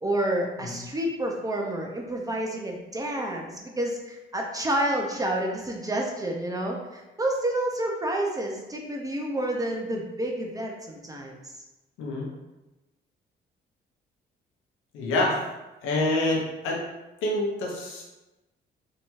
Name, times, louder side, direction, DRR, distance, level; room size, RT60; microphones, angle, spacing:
voice 1, 0.0-11.4, right 1 dB, 20° right, 0 dB, 0.4 m, -29 dB
voice 2, 12.0-12.3 14.9-15.4 15.8-16.8 17.2-18.0, left 2 dB, 90° left, -2 dB, 0.7 m, -26 dB
2.8 x 2.2 x 2.9 m, 1.0 s
cardioid pair, 90°, 20 cm